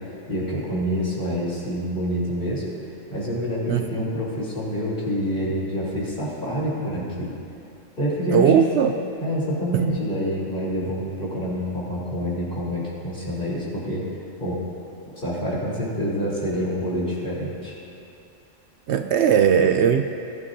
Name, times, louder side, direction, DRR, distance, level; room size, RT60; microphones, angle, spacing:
voice 1, 0.3-2.6 3.1-7.3 8.0-8.6 9.2-14.1 14.4-14.6 15.2-17.7, equal, 45° left, -7 dB, 3.6 m, -27 dB
voice 2, 3.7-4.1 8.3-8.9 18.9-20.0, right 8 dB, 70° right, 7 dB, 0.8 m, -18 dB
19.5 x 12.5 x 2.7 m, 2.7 s
omnidirectional pair, 1.3 m